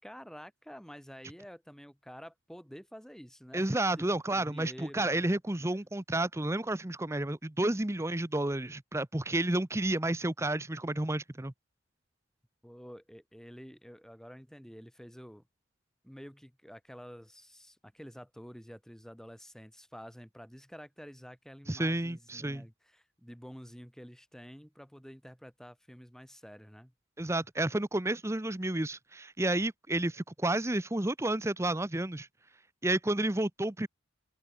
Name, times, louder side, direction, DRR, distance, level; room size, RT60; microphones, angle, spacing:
voice 1, 0.0-5.4 12.6-15.4 16.0-26.9, equal, 5° left, 4.6 m, -49 dB
voice 2, 3.5-11.5 21.7-22.6 27.2-32.3 32.8-33.9, right 1 dB, 15° right, 0.7 m, -31 dB
open air
head